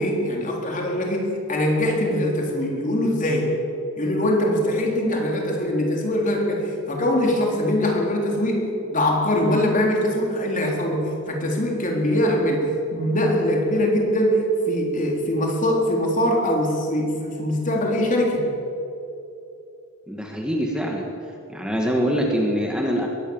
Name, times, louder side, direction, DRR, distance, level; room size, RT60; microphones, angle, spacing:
voice 1, 0.0-3.5 4.0-12.6 12.9-18.5, left 1 dB, 40° left, 1 dB, 4.0 m, -22 dB
voice 2, 20.1-21.1 21.5-23.1, equal, 5° right, 0 dB, 2.1 m, -24 dB
22.0 x 17.5 x 7.3 m, 2.7 s
head